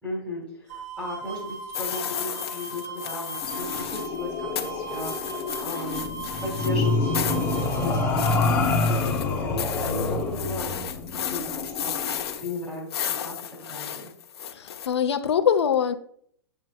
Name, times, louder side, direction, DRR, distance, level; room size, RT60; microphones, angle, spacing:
voice 1, 0.0-14.1, left 1 dB, 5° right, 2.0 m, -36 dB
sound 1, 0.7-8.4, right 6 dB, 40° right, 0.9 m, -38 dB
sound 2, 1.7-4.2 4.6-14.9, left 9 dB, 70° left, 1.1 m, -34 dB
sound 3, 3.4-12.4, left 3 dB, 15° left, 0.8 m, -27 dB
voice 2, 14.5-15.9, left 8 dB, 90° left, 0.8 m, -23 dB
9.2 x 7.5 x 2.3 m
hypercardioid pair, 165°, 14 cm